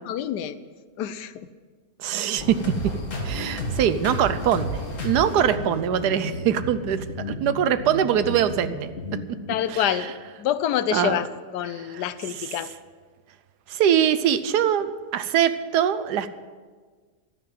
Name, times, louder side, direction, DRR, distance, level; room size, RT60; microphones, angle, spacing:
voice 1, 0.1-0.5 1.0-1.5 9.5-10.1 10.4-11.3 11.5-12.7, left 10 dB, 80° left, 14 dB, 1.3 m, -26 dB
voice 2, 2.0-2.6 3.2-8.9 9.7-10.1 10.9-11.2 11.7-12.5 13.7-16.3, right 9 dB, 80° right, 12 dB, 1.3 m, -23 dB
sound 1, 2.4-9.9, left 1 dB, 50° left, 2.0 m, -32 dB
12.0 x 9.9 x 7.5 m, 1.5 s
omnidirectional pair, 1.7 m